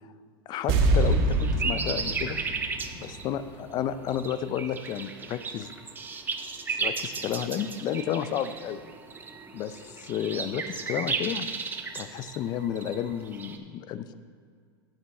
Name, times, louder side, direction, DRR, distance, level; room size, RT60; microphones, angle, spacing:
voice 1, 0.5-2.4 2.9-5.7 6.7-8.8 9.5-11.5 11.9-14.1, left 9 dB, 35° left, 13 dB, 0.4 m, -32 dB
sound 1, 0.7-13.6, right 5 dB, 15° right, 0.6 m, -35 dB
sound 2, 0.7-3.9 4.1-4.2, right 2 dB, 45° right, 1.2 m, -26 dB
8.9 x 8.2 x 4.2 m, 2.1 s
supercardioid pair, 135°, 13 cm